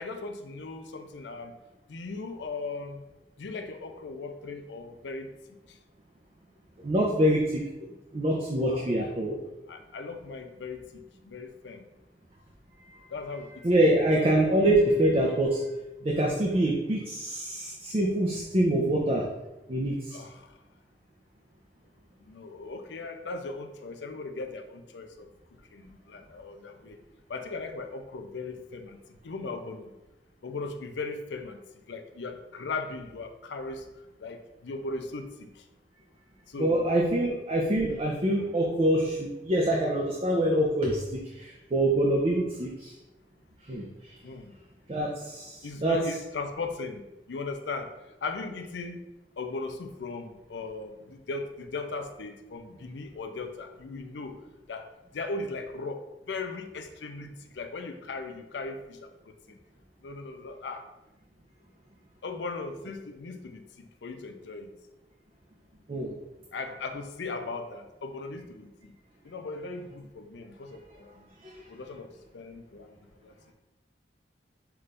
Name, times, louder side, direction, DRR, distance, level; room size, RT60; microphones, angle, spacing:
voice 1, 0.0-1.5 1.9-3.0 3.4-5.3 8.7-8.9 9.7-11.9 13.1-14.1 20.1-20.5 22.2-25.3 25.7-27.0 27.3-29.0 29.2-29.9 30.4-31.6 31.9-33.9 34.2-35.6 36.5-36.9 44.2-44.5 45.6-47.0 47.3-47.9 48.2-49.0 49.4-54.4 54.7-54.9 55.1-59.1 59.5-59.6 60.0-60.8 62.2-64.7 66.5-68.9 69.2-71.3 71.7-72.1 72.3-73.3, left 3 dB, 85° left, 6 dB, 0.5 m, -38 dB
voice 2, 6.8-7.6 8.1-9.3 13.6-15.7 16.0-19.3 19.7-20.2 36.6-42.9 43.7-43.9 44.9-46.0 65.9-66.2, right 1 dB, 35° right, -1 dB, 0.5 m, -25 dB
5.8 x 2.5 x 3.3 m, 0.98 s
head